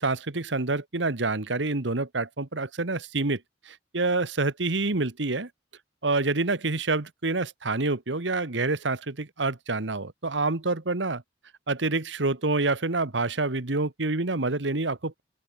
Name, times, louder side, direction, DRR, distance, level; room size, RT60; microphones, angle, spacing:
voice 1, 0.0-5.5 6.0-11.2 11.7-15.2, right 3 dB, 75° right, 1.6 m, -27 dB
open air
head